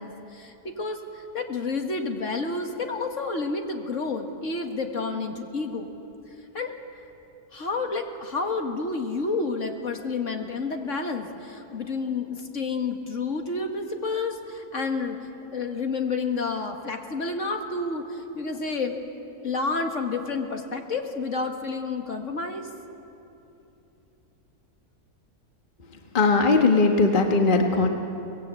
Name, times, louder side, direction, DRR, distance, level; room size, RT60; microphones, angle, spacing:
voice 1, 0.0-5.9 6.5-6.7 7.5-15.2 15.5-19.0 19.4-22.7, left 3 dB, 50° left, 4 dB, 1.9 m, -30 dB
voice 2, 26.1-27.9, left 3 dB, 35° left, 3 dB, 1.4 m, -19 dB
24.0 x 19.5 x 8.2 m, 2.9 s
omnidirectional pair, 1.6 m